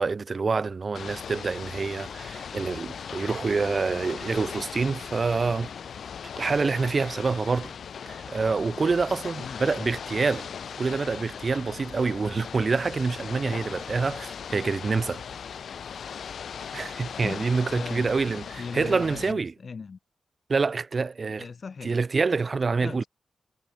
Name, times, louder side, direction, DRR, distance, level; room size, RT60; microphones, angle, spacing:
voice 1, 0.0-5.7 6.4-7.7 8.1-10.5 10.8-15.2 16.7-19.5 20.5-21.4 21.8-23.0, right 4 dB, 40° right, 0.4 m, -26 dB
Ocean / Boat Water vehicle, 0.9-19.3, left 7 dB, 75° left, 3.2 m, -38 dB
voice 2, 9.3-10.0 17.2-17.4 17.7-20.0 21.4-22.0 22.8-23.1, left 5 dB, 45° left, 6.1 m, -39 dB
wide cardioid pair, 130°, 0 cm